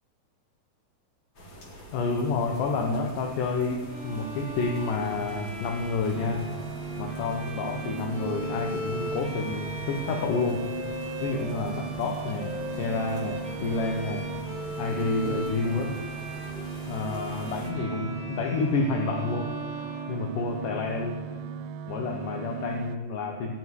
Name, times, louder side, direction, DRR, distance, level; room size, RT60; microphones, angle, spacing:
sound 1, 1.3-17.7, equal, 35° left, 2.6 m, -46 dB
voice 1, 1.9-6.4 7.0-10.6 11.2-12.5 12.8-14.3 14.8-15.9 16.9-19.5 20.1-21.2 21.9-23.5, left 3 dB, 70° left, 2 dB, 2.5 m, -29 dB
Bowed string instrument, 3.9-20.9, right 1 dB, 5° right, 1.2 m, -39 dB
sound 2, 6.1-23.0, right 6 dB, 85° right, 2.4 m, -38 dB
17.5 x 6.4 x 9.2 m, 1.5 s
omnidirectional pair, 4.2 m